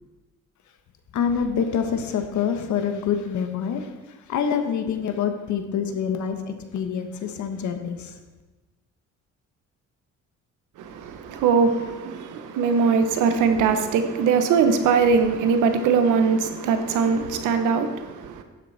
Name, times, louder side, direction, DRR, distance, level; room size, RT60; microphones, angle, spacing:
voice 1, 1.1-8.2, left 7 dB, 70° left, 1.2 m, -26 dB
voice 2, 10.8-18.4, right 5 dB, 85° right, 1.1 m, -21 dB
12.0 x 7.5 x 4.2 m
cardioid pair, 90°, 30 cm